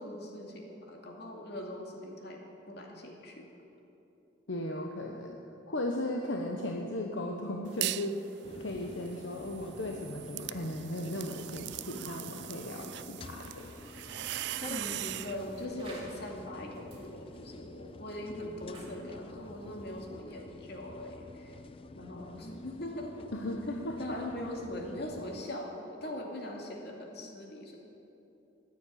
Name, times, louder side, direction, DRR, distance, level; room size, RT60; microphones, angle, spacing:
voice 1, 0.0-2.4 2.7-3.5 14.7-21.6 22.0-23.2 24.0-27.7, left 1 dB, 55° left, 0 dB, 2.4 m, -41 dB
voice 2, 4.5-5.4 5.7-8.3 8.6-13.7 23.3-24.2, left 1 dB, 75° left, 1 dB, 1.0 m, -36 dB
sound 1, 7.6-8.2 8.6-15.4, right 15 dB, 60° right, 0.3 m, -40 dB
sound 2, 8.4-25.4, left 2 dB, 30° left, 0.4 m, -49 dB
sound 3, 13.1-20.4, right 2 dB, 30° right, 2.6 m, -55 dB
14.5 x 9.7 x 8.6 m, 2.9 s
head